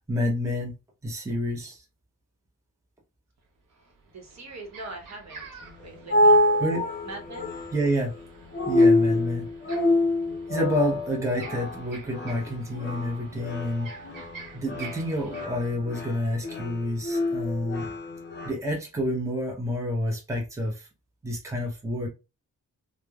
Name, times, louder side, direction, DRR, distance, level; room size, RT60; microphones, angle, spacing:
voice 1, 0.1-0.8 1.0-1.8 6.6-6.9 7.7-8.2 8.7-9.5 10.5-13.9 14.5-17.9 18.4-20.9 21.2-22.1, equal, 10° right, 0.7 m, -28 dB
sound 1, 3.4-3.5 3.9-15.4, right 4 dB, 80° right, 0.8 m, -48 dB
voice 2, 3.7-6.4 7.0-7.5, right 2 dB, 55° right, 0.9 m, -42 dB
sound 2, 5.6-18.5, left 1 dB, 35° left, 0.6 m, -26 dB
3.0 x 2.1 x 2.3 m
wide cardioid pair, 120°, 33 cm